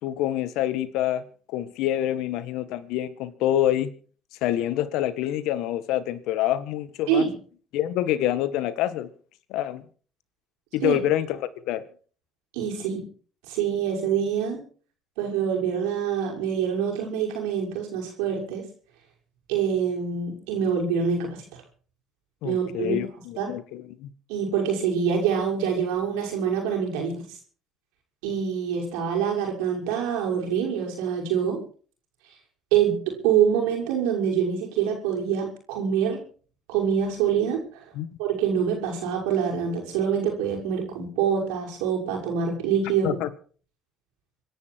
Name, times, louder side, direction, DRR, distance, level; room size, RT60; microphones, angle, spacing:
voice 1, 0.0-3.9 4.4-7.3 7.7-9.1 9.5-9.8 10.7-11.4 11.6-11.8 22.4-24.1 37.9-38.1 43.0-43.3, left 12 dB, 70° left, 14 dB, 1.6 m, -26 dB
voice 2, 12.5-13.0 13.5-14.6 15.2-18.6 19.5-21.6 22.4-23.0 23.4-23.5 24.3-27.2 28.2-31.6 32.7-36.2 36.7-37.9 38.2-43.2, right 7 dB, 80° right, 0 dB, 6.2 m, -25 dB
26.0 x 11.0 x 4.7 m, 0.42 s
hypercardioid pair, 60°, 0 cm